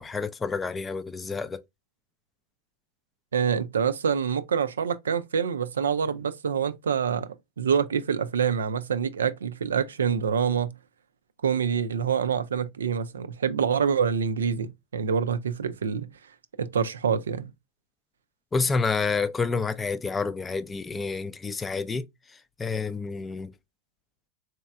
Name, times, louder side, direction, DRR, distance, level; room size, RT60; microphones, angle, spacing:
voice 1, 0.0-1.6 18.5-22.0 22.6-23.5, left 4 dB, 15° left, 0.3 m, -28 dB
voice 2, 3.3-7.3 7.6-10.7 11.4-16.1 16.6-17.5, right 7 dB, 70° right, 0.3 m, -26 dB
4.1 x 3.0 x 2.2 m
figure-of-eight pair, 90°, 0 cm